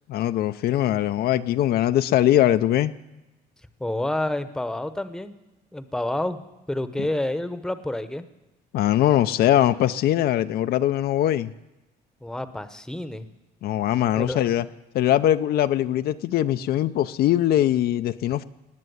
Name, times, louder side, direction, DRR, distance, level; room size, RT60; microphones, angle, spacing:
voice 1, 0.1-2.9 7.0-7.1 8.7-11.5 13.6-14.7 14.9-18.4, left 12 dB, 65° left, 0.5 m, -21 dB
voice 2, 3.8-5.3 5.7-6.4 6.7-8.3 12.2-13.3 14.2-14.4, left 1 dB, 5° left, 0.9 m, -28 dB
19.5 x 7.6 x 9.3 m
cardioid pair, 110°, 17 cm